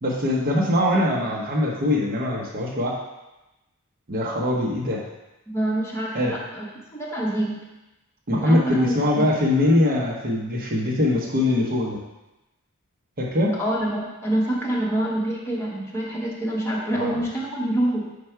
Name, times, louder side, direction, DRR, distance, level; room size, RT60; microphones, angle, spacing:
voice 1, 0.0-2.9 4.1-5.0 6.1-6.3 8.3-12.0 13.2-13.5 16.9-17.1, left 1 dB, 45° right, -3 dB, 1.0 m, -22 dB
voice 2, 5.5-6.7 6.9-7.6 8.3-9.3 13.6-18.1, right 1 dB, 10° left, -5 dB, 1.3 m, -26 dB
5.2 x 4.5 x 4.5 m, 0.98 s
head